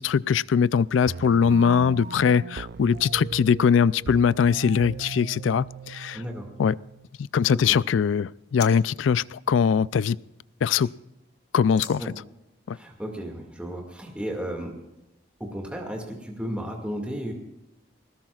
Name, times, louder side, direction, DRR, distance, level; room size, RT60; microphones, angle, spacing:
voice 1, 0.0-6.2 6.6-6.7 7.3-10.2 10.6-10.9 11.5-12.0 12.7-12.8, left 6 dB, 85° left, 0.4 m, -21 dB
sound 1, 1.1-7.1, right 5 dB, 55° right, 0.4 m, -38 dB
voice 2, 6.1-6.5 7.5-7.8 12.0-12.1 12.7-14.7 15.4-17.3, equal, 5° right, 2.1 m, -34 dB
sound 2, 6.6-8.8 9.1-10.8 11.7-12.0, left 9 dB, 60° left, 1.5 m, -44 dB
21.0 x 19.5 x 2.4 m
head